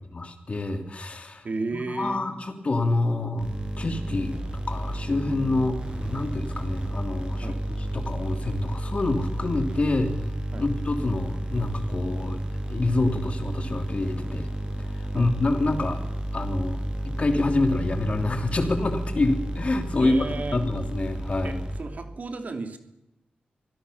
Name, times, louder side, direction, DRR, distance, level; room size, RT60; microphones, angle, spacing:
voice 1, 0.1-3.5 3.8-10.2 10.6-12.4 12.7-14.5 14.9-16.0 16.3-20.1 20.5-21.6, left 2 dB, 40° left, 6 dB, 3.3 m, -27 dB
voice 2, 1.4-2.2 7.4-7.6 10.5-10.7 15.1-15.3 20.0-20.6 21.4-22.8, right 3 dB, 55° right, 7 dB, 2.7 m, -33 dB
sound 1, 3.4-22.2, right 1 dB, 30° right, 7.4 m, -32 dB
24.0 x 17.0 x 7.1 m, 0.88 s
wide cardioid pair, 110°, 3 cm